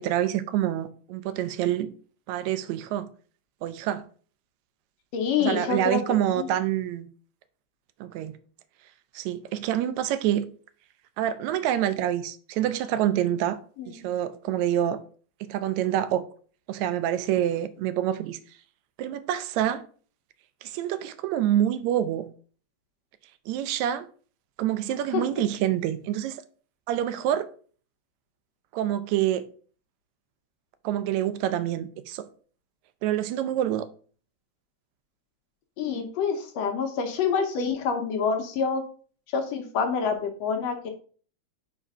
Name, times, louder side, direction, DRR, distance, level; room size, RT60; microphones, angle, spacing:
voice 1, 0.0-1.9 2.3-3.1 3.6-4.0 5.4-7.1 8.0-8.4 9.1-10.5 11.2-13.6 13.9-15.0 15.4-16.2 16.7-18.4 19.0-19.8 20.6-22.3 23.5-24.1 24.6-26.4 26.9-27.5 28.7-29.5 30.8-32.3 33.0-33.9, right 11 dB, 80° right, 1.8 m, -27 dB
voice 2, 5.1-6.0 6.3-6.5 13.8-13.9 25.1-25.2 35.8-38.8 39.3-40.9, left 6 dB, 70° left, 1.9 m, -27 dB
5.0 x 4.9 x 5.5 m
omnidirectional pair, 3.3 m